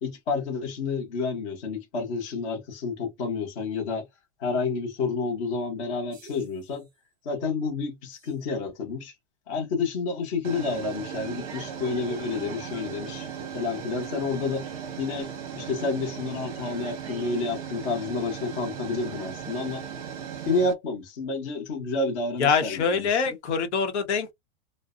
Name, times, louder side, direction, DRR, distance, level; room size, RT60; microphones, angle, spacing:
voice 1, 0.0-4.0 4.4-6.9 7.2-9.1 9.5-13.3 13.5-14.6 15.0-15.3 15.6-19.8 20.5-23.3, left 4 dB, 30° left, 0.7 m, -29 dB
sound 1, 6.1-6.6 8.2-8.3 10.4-20.7, right 8 dB, 30° right, 0.7 m, -37 dB
voice 2, 22.4-24.3, left 5 dB, 75° left, 0.8 m, -24 dB
2.5 x 2.0 x 2.4 m
supercardioid pair, 180°, 35 cm